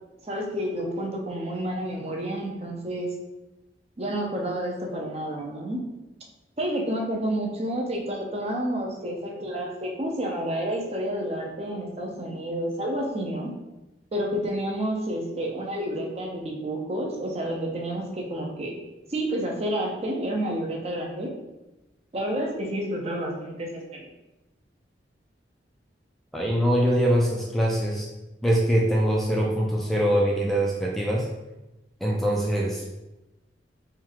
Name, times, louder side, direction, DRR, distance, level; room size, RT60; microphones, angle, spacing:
voice 1, 0.2-3.1 4.0-5.8 6.6-13.5 14.1-18.7 19.1-21.3 22.1-24.0, right 1 dB, 35° right, 0 dB, 0.7 m, -30 dB
voice 2, 26.3-28.1 28.4-31.3 32.0-32.8, equal, ahead, -3 dB, 0.4 m, -23 dB
3.6 x 2.3 x 4.5 m, 0.99 s
head